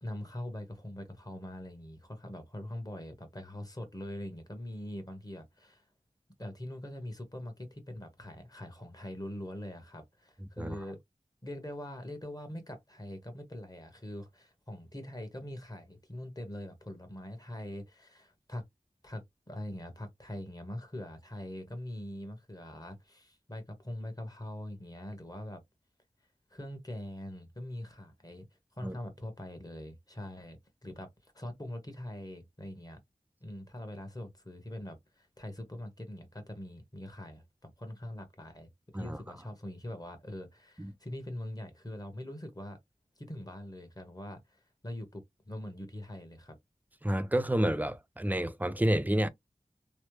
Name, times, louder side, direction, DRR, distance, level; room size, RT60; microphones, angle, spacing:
voice 1, 0.0-5.8 6.4-11.0 11.4-18.6 19.0-25.6 26.5-28.5 28.8-33.0 33.4-42.8 43.2-46.6, left 1 dB, 25° left, 1.2 m, -43 dB
voice 2, 47.0-49.3, right 1 dB, 10° right, 0.4 m, -29 dB
3.2 x 2.0 x 3.1 m
wide cardioid pair, 40°, 15 cm